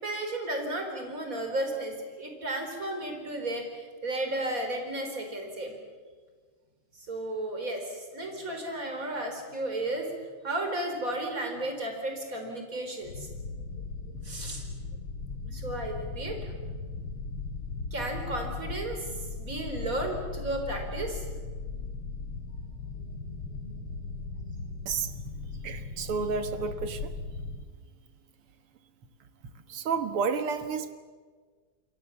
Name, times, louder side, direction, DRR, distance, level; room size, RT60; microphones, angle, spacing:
voice 1, 0.0-5.7 7.0-10.1 10.4-13.3 14.2-14.6 15.5-16.5 17.9-19.1 19.3-21.2, right 1 dB, 40° right, 4 dB, 4.6 m, -33 dB
sound 1, 13.0-27.7, left 3 dB, 80° left, 3.4 m, -38 dB
voice 2, 25.6-27.1 29.7-30.9, right 5 dB, 85° right, 10 dB, 2.3 m, -30 dB
28.0 x 23.0 x 7.2 m, 1.5 s
omnidirectional pair, 2.4 m